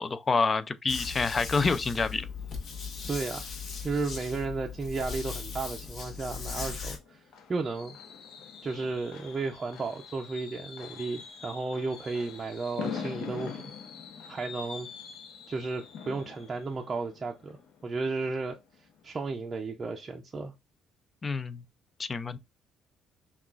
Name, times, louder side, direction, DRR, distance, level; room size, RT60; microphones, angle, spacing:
voice 1, 0.0-2.3 21.2-21.6 22.0-22.4, left 4 dB, 30° left, 0.4 m, -28 dB
sound 1, 0.9-7.0, left 5 dB, 50° left, 1.1 m, -38 dB
voice 2, 3.1-3.4 3.8-7.2 7.5-8.0 8.6-13.6 14.3-14.9 15.5-20.5, right 3 dB, 30° right, 0.5 m, -34 dB
Fireworks, 6.7-18.4 18.7-19.0 19.3-19.4, left 6 dB, 70° left, 0.9 m, -43 dB
5.8 x 2.4 x 2.4 m
cardioid pair, 110°, 0 cm